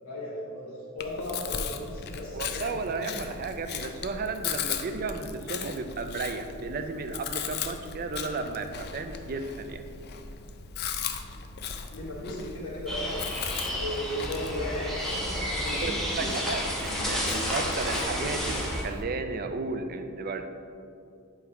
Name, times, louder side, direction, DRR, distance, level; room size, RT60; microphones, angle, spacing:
voice 1, 0.0-3.2 11.9-13.2 13.7-16.3, left 1 dB, 70° left, -6 dB, 1.3 m, -36 dB
Chewing mastication, 1.0-19.0, left 6 dB, 50° left, 0.4 m, -38 dB
voice 2, 2.3-9.8 15.8-20.4, right 3 dB, 40° right, 8 dB, 0.4 m, -34 dB
sound 1, 12.9-18.8, equal, ahead, 0.9 m, -31 dB
8.0 x 3.2 x 4.7 m, 2.5 s
head